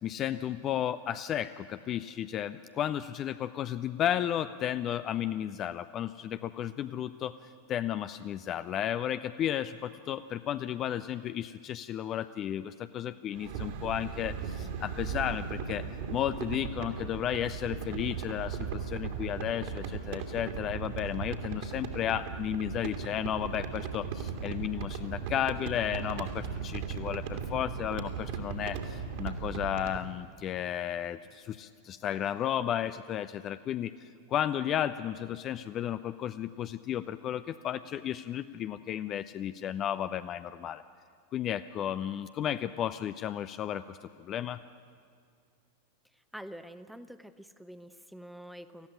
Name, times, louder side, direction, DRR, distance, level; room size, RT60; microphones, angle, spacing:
voice 1, 0.0-7.3 7.7-15.9 16.1-40.8 41.3-44.6, left 10 dB, 30° left, 12 dB, 0.5 m, -33 dB
sound 1, 13.3-30.0, right 6 dB, 50° right, 2.3 m, -37 dB
voice 2, 46.3-48.9, equal, ahead, 11 dB, 0.8 m, -46 dB
18.5 x 14.5 x 9.9 m, 2.2 s
figure-of-eight pair, 90°, 0 cm